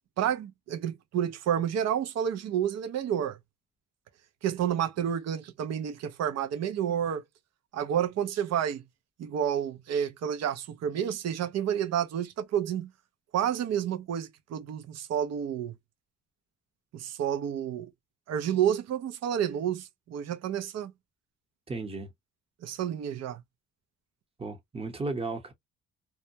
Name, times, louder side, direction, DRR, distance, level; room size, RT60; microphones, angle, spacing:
voice 1, 0.2-3.4 4.4-7.2 7.7-8.8 9.2-12.9 13.3-15.7 16.9-17.9 18.3-20.9 22.6-23.4, right 9 dB, 60° right, 0.6 m, -30 dB
voice 2, 21.7-22.1 24.4-25.5, right 3 dB, 20° right, 0.9 m, -34 dB
2.2 x 2.1 x 2.7 m
cardioid pair, 90°, 30 cm